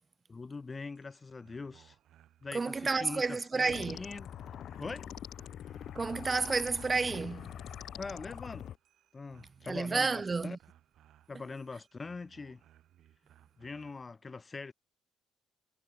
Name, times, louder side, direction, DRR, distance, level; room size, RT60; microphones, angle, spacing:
voice 1, 0.3-2.0 2.4-4.3 4.8-5.1 8.0-8.7 9.1-10.6 11.3-12.6 13.6-14.7, left 4 dB, 20° left, 0.6 m, -42 dB
sound 1, 0.9-14.1, right 12 dB, 60° right, 5.7 m, -64 dB
voice 2, 2.5-4.0 6.0-7.5 9.7-10.6, right 4 dB, 20° right, 0.5 m, -31 dB
sound 2, 3.7-8.8, left 10 dB, 50° left, 1.8 m, -44 dB
cardioid pair, 135°, 0 cm